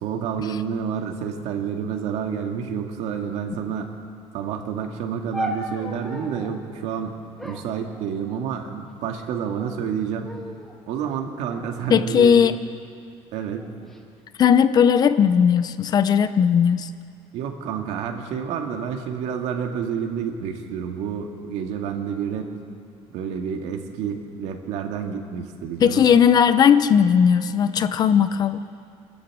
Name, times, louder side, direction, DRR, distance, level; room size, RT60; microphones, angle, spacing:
voice 1, 0.0-3.9 4.3-7.2 7.4-10.3 10.9-12.5 13.3-13.7 17.3-22.5 23.1-26.1, right 7 dB, 75° right, 4 dB, 2.1 m, -29 dB
sound 1, 5.3-6.6 7.4-8.6 9.4-9.9 10.2-10.8 11.5-12.8 13.6-14.0, equal, ahead, 1.8 m, -36 dB
voice 2, 11.9-12.6 14.4-16.9 25.8-28.6, left 7 dB, 35° left, 12 dB, 0.7 m, -17 dB
26.5 x 13.5 x 7.7 m, 2.3 s
cardioid pair, 160°, 11 cm